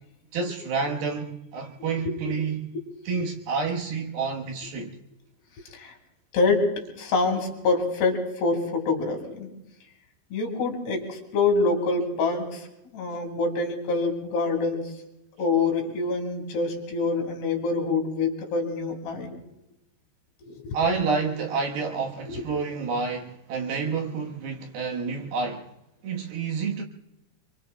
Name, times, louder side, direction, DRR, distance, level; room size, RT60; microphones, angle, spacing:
voice 1, 0.3-2.7 3.1-5.0 20.7-25.7 26.0-26.8, right 5 dB, 65° right, 2.8 m, -29 dB
voice 2, 6.3-9.5 10.3-12.7 12.9-14.9 15.4-19.3 20.4-20.8 22.3-22.4, left 3 dB, 65° left, 4.4 m, -26 dB
26.5 x 24.0 x 2.2 m
omnidirectional pair, 5.2 m